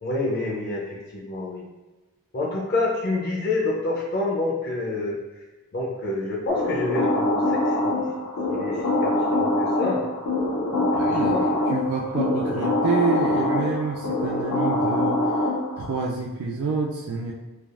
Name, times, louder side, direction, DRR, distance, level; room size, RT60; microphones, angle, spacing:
voice 1, 0.0-1.7 2.3-5.2 5.7-8.0 8.5-10.0 10.7-10.9 11.2-11.7, left 2 dB, 50° left, -2 dB, 0.5 m, -28 dB
sound 1, 6.5-15.9, left 1 dB, 90° left, 0.8 m, -24 dB
voice 2, 10.9-15.2 15.8-17.3, right 4 dB, 65° right, -3 dB, 0.4 m, -27 dB
3.3 x 2.3 x 2.4 m, 1.1 s
head